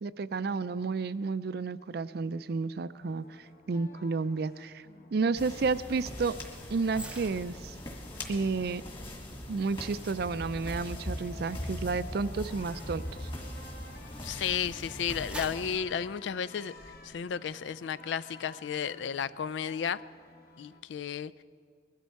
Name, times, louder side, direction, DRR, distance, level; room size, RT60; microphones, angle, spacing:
voice 1, 0.0-3.2 3.7-4.8 5.1-6.4 6.7-7.7 8.3-8.8 9.5-13.3, right 4 dB, 60° right, 16 dB, 0.4 m, -31 dB
sound 1, 3.0-20.8, left 3 dB, 60° left, 1.2 m, -53 dB
sound 2, 5.4-15.8, left 1 dB, 30° left, 2.0 m, -41 dB
sound 3, 6.9-14.3 14.8-17.1 17.5-17.7, right 2 dB, 5° right, 0.6 m, -51 dB
voice 2, 14.2-16.7 17.0-20.0 20.6-21.3, left 7 dB, 85° left, 19 dB, 0.4 m, -33 dB
21.0 x 13.0 x 4.6 m, 2.2 s
head